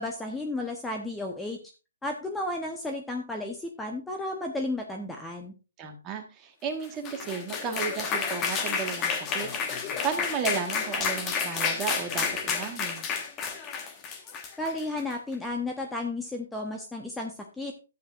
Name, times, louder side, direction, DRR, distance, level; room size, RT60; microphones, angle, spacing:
voice 1, 0.0-1.6 2.0-5.5 14.6-17.7, left 2 dB, 5° left, 2 dB, 0.9 m, -33 dB
voice 2, 5.8-9.5 10.0-13.1, right 6 dB, 20° right, 4 dB, 1.5 m, -34 dB
sound 1, 6.8-15.1, left 6 dB, 20° left, 1.4 m, -30 dB
12.0 x 8.1 x 2.5 m, 0.32 s
hypercardioid pair, 135°, 0 cm